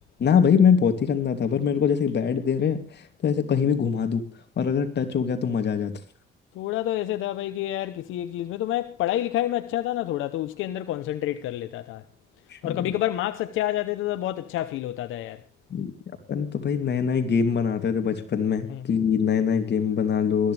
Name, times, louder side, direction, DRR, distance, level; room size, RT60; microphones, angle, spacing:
voice 1, 0.2-4.3 4.6-6.0 12.5-12.9 15.7-15.9 16.3-20.5, left 7 dB, 60° left, 2.9 m, -23 dB
voice 2, 6.5-12.0 12.6-15.4 18.7-18.8, left 13 dB, 90° left, 0.9 m, -28 dB
20.5 x 14.0 x 3.4 m
cardioid pair, 90°, 20 cm